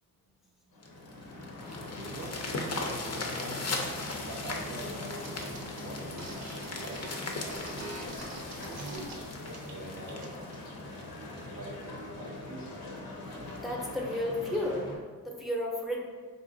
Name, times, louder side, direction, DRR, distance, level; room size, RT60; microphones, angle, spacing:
sound 1, 0.7-15.0, left 2 dB, 85° left, 0.8 m, -42 dB
sound 2, 0.8-11.3 11.9-12.0 12.4-12.5 12.8-12.9 13.3-13.6 14.5-14.6, left 3 dB, 45° left, 0.6 m, -39 dB
voice 1, 1.9-3.7 4.2-8.3 8.7-9.1 9.7-10.4 11.2-12.8, right 2 dB, 40° right, -2 dB, 0.5 m, -45 dB
sound 3, 5.2-5.3 5.5-9.1 9.5-9.7 10.0-10.6, right 2 dB, 85° right, 0.7 m, -44 dB
voice 2, 13.5-14.9 15.2-16.0, left 1 dB, ahead, -2 dB, 0.7 m, -32 dB
4.1 x 2.6 x 2.6 m, 1.5 s
cardioid pair, 65°, 36 cm